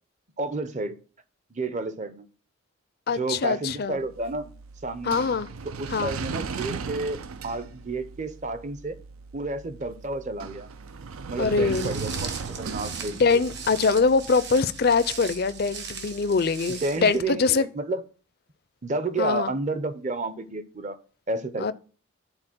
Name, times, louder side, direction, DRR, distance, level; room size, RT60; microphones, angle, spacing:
voice 1, 0.4-1.0 1.5-2.3 3.1-4.5 4.8-5.2 5.6-9.0 9.3-10.7 11.3-12.3 12.6-13.2 16.8-18.0 18.8-21.0 21.3-21.7, right 2 dB, 35° right, 0.6 m, -31 dB
voice 2, 3.1-4.0 5.0-5.5 5.9-6.1 11.4-12.0 13.1-17.7 19.2-19.5 21.6-21.7, left 4 dB, 45° left, 0.4 m, -23 dB
sound 1, 4.0-17.1, right 5 dB, 80° right, 0.5 m, -38 dB
Walk footsteps, 11.7-17.2, right 6 dB, 55° right, 1.2 m, -39 dB
9.8 x 4.2 x 6.0 m
head